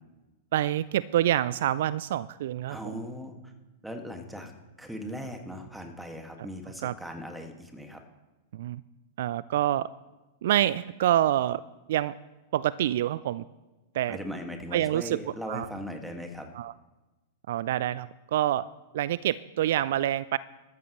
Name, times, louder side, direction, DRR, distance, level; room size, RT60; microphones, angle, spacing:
voice 1, 0.5-2.8 6.8-6.9 8.5-8.8 9.2-9.9 10.4-11.6 11.9-12.2 12.5-13.4 13.9-14.2 14.7-15.2 15.5-15.7 16.5-16.7 17.5-18.7 18.9-20.4, right 12 dB, 60° right, 19 dB, 0.3 m, -26 dB
voice 2, 2.7-3.5 3.8-4.5 4.8-8.0 14.1-16.5, equal, 5° right, 4 dB, 1.8 m, -39 dB
14.0 x 13.5 x 3.1 m, 1.1 s
figure-of-eight pair, 100°, 0 cm